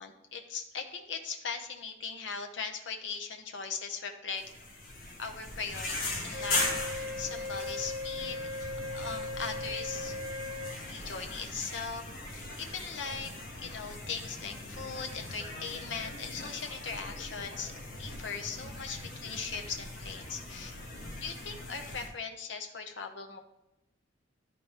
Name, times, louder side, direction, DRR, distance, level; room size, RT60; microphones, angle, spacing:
voice 1, 0.0-4.4 5.2-6.7 7.0-8.4 8.9-10.2 10.9-12.0 12.3-13.3 13.6-17.7 18.0-20.8 21.2-23.4, left 5 dB, 80° left, 4 dB, 0.8 m, -39 dB
sound 1, 4.3-22.1, left 2 dB, 50° left, 1.8 m, -40 dB
Wind instrument woodwind instrument, 6.3-10.8, left 2 dB, 50° right, 1.7 m, -38 dB
11.5 x 4.2 x 3.3 m, 0.92 s
head